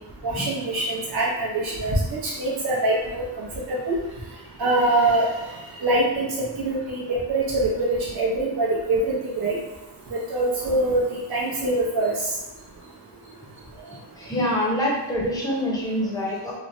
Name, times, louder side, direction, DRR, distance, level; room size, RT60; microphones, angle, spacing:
voice 1, 0.2-4.0 4.6-5.4 5.8-9.6 10.1-11.0 11.3-12.1, right 2 dB, 55° right, -5 dB, 0.8 m, -24 dB
voice 2, 14.2-16.6, equal, 10° left, -4 dB, 0.6 m, -25 dB
3.2 x 2.1 x 2.6 m, 0.98 s
wide cardioid pair, 145°, 44 cm